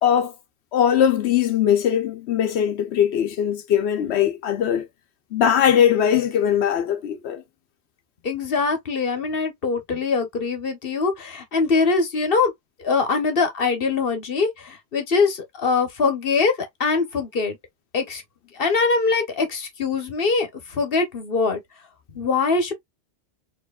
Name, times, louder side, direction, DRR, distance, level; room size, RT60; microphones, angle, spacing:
voice 1, 0.0-0.3 0.7-4.9 5.3-7.4, left 9 dB, 80° left, 0.9 m, -20 dB
voice 2, 8.2-12.5 12.8-16.5 16.8-17.6 17.9-18.2 18.5-21.6 22.1-22.7, left 4 dB, 60° left, 1.2 m, -22 dB
4.5 x 3.0 x 2.3 m
omnidirectional pair, 1.1 m